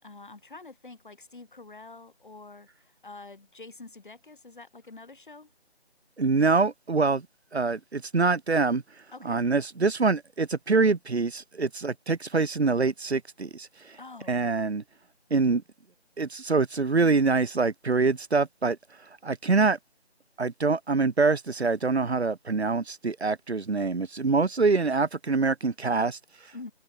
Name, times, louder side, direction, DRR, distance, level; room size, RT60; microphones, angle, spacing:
voice 1, 0.0-5.5 9.1-9.5 14.0-14.4 26.5-26.7, left 3 dB, 50° left, 5.8 m, -46 dB
voice 2, 6.2-7.3 7.5-8.8 9.2-14.0 14.3-14.8 15.3-15.6 16.2-19.8 20.4-26.7, right 4 dB, 75° right, 1.3 m, -25 dB
figure-of-eight pair, 175°, 33 cm